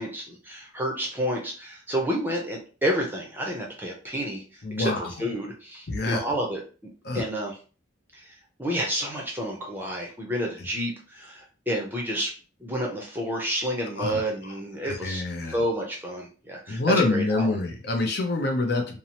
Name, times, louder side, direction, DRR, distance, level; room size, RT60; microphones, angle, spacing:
voice 1, 0.0-4.4 4.8-6.6 7.1-7.5 8.1-8.3 8.6-12.3 12.6-15.2 15.5-17.6, equal, 10° right, -1 dB, 0.5 m, -30 dB
voice 2, 4.6-5.1 5.9-6.2 7.0-7.2 14.0-14.5 14.8-15.6 16.7-19.0, left 2 dB, 55° left, 3 dB, 0.5 m, -26 dB
2.7 x 2.0 x 2.8 m, 0.36 s
head